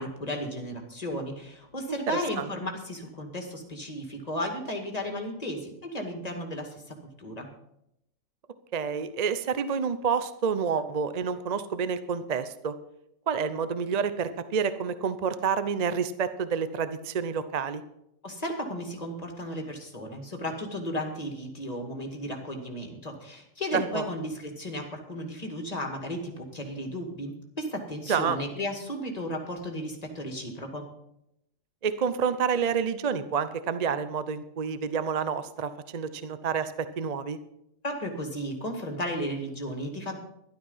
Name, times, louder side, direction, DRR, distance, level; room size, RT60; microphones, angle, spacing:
voice 1, 0.0-7.5 18.2-30.9 37.8-40.2, equal, 30° left, 4 dB, 2.1 m, -34 dB
voice 2, 1.9-2.5 8.7-12.7 13.3-17.8 23.7-24.0 28.1-28.4 31.8-37.4, right 6 dB, 45° right, 12 dB, 0.5 m, -29 dB
12.5 x 11.5 x 5.5 m, 0.81 s
omnidirectional pair, 1.4 m